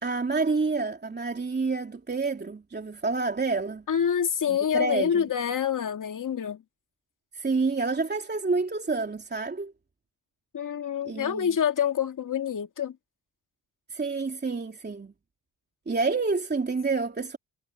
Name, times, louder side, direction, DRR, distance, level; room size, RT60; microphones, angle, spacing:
voice 1, 0.0-3.8 4.5-5.2 7.3-9.7 11.0-11.5 13.9-15.1 15.9-17.4, right 4 dB, 25° right, 3.1 m, -28 dB
voice 2, 3.9-6.6 10.5-13.0, left 8 dB, 50° left, 2.3 m, -27 dB
cardioid pair, 85°, 41 cm